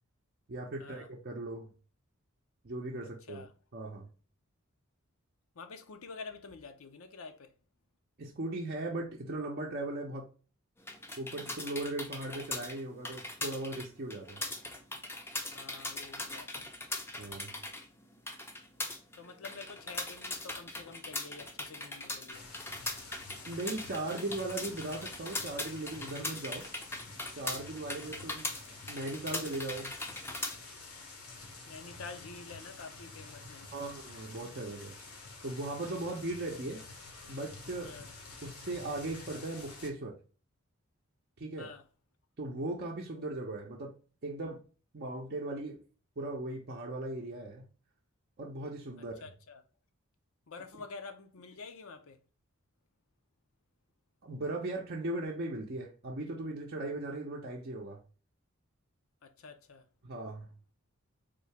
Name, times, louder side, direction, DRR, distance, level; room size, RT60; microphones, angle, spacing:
voice 1, 0.5-1.7 2.6-3.5 3.7-4.1 8.2-10.3 11.2-14.4 17.2-17.6 23.5-26.6 27.3-28.5 28.9-29.9 33.7-35.0 35.4-36.8 37.3-37.9 38.4-40.2 41.4-41.7 42.4-43.9 44.2-44.6 44.9-45.8 46.2-47.7 48.4-49.3 54.2-58.0 60.0-60.5, right 2 dB, 45° right, 0.6 m, -38 dB
voice 2, 5.6-7.5 15.5-16.7 19.1-22.4 31.7-33.9 37.8-38.1 41.6-41.8 49.2-49.6 50.5-52.2 59.2-59.8, left 4 dB, 65° left, 0.6 m, -48 dB
sound 1, 10.8-30.6, left 2 dB, 10° left, 0.5 m, -40 dB
sound 2, 22.3-39.9, left 3 dB, 85° left, 1.2 m, -49 dB
3.8 x 2.7 x 3.2 m
head